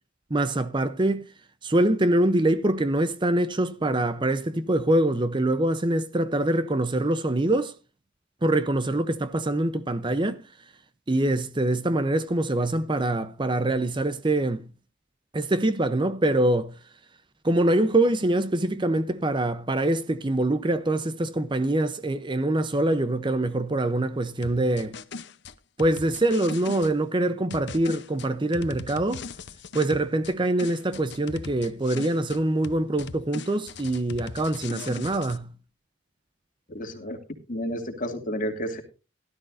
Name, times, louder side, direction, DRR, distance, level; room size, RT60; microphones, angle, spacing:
voice 1, 0.3-1.3 1.6-7.7 8.4-10.4 11.1-14.7 15.3-16.8 17.4-24.9 25.8-29.2 29.7-35.5, right 1 dB, 25° right, 0.6 m, -24 dB
sound 1, 24.4-26.9 27.5-30.3 30.6-32.4 32.6-35.4, left 4 dB, 60° left, 0.8 m, -39 dB
voice 2, 36.7-37.2 37.5-38.8, equal, 40° left, 2.4 m, -31 dB
17.0 x 12.5 x 2.6 m
head